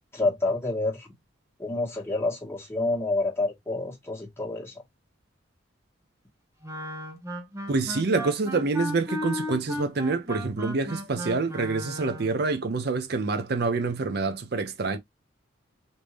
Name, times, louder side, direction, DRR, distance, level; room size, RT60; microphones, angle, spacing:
voice 1, 0.1-1.1 1.6-4.7, left 2 dB, 10° left, 1.4 m, -28 dB
Wind instrument woodwind instrument, 6.6-12.4, equal, 15° right, 0.7 m, -35 dB
voice 2, 7.7-15.0, right 3 dB, 50° right, 0.5 m, -27 dB
3.4 x 2.7 x 3.2 m
head